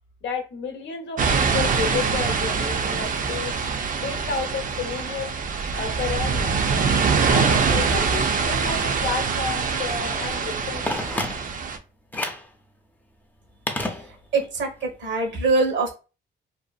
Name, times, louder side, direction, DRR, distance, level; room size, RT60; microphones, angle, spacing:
voice 1, 0.2-3.5 4.0-5.3 5.7-6.6 7.2-10.9, left 5 dB, 65° left, 4 dB, 0.8 m, -31 dB
sound 1, 1.2-11.8, right 5 dB, 45° right, 0.5 m, -24 dB
Telephone, 10.9-11.7 12.1-12.5 13.7-14.5 14.8-14.9, left 1 dB, 10° left, 0.5 m, -30 dB
voice 2, 14.3-15.9, right 3 dB, 65° right, 3 dB, 1.1 m, -23 dB
2.7 x 2.4 x 2.3 m, 0.32 s
cardioid pair, 90°, 20 cm